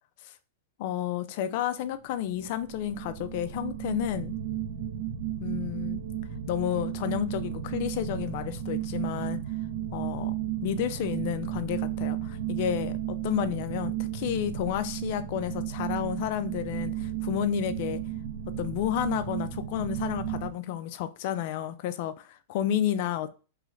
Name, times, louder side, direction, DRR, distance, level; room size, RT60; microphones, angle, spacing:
voice 1, 0.8-4.3 5.4-6.0 6.5-9.4 9.9-10.3 10.6-18.0 18.6-23.4, left 10 dB, 40° left, 0.4 m, -31 dB
sound 1, 2.3-20.5, right 11 dB, 50° right, 0.7 m, -34 dB
3.1 x 2.5 x 3.1 m
supercardioid pair, 165°, 0 cm